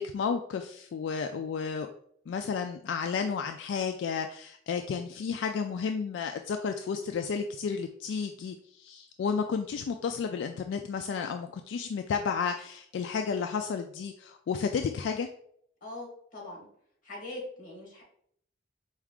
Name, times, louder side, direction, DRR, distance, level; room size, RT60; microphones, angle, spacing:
voice 1, 0.0-1.9 2.3-15.3, left 6 dB, 75° left, 5 dB, 0.3 m, -32 dB
voice 2, 15.8-16.7 17.0-18.0, left 1 dB, 45° left, -2 dB, 1.5 m, -41 dB
4.6 x 2.4 x 3.5 m, 0.66 s
head